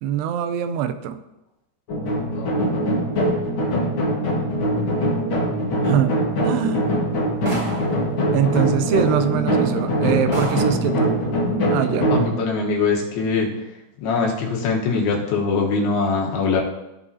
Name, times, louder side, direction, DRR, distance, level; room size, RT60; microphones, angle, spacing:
voice 1, 0.0-1.2 5.8-6.9 8.3-11.2 11.7-12.1, right 9 dB, 90° right, 10 dB, 2.6 m, -23 dB
sound 1, 1.9-12.3, equal, 55° left, 1.3 m, -22 dB
voice 2, 2.4-2.7 12.1-13.5 14.0-16.6, left 4 dB, 75° left, -1 dB, 3.1 m, -22 dB
sound 2, 7.5-8.0 9.1-9.2 9.7-9.8 10.3-10.9, right 2 dB, 35° right, 2.0 m, -31 dB
14.5 x 5.5 x 2.7 m, 0.95 s
omnidirectional pair, 4.6 m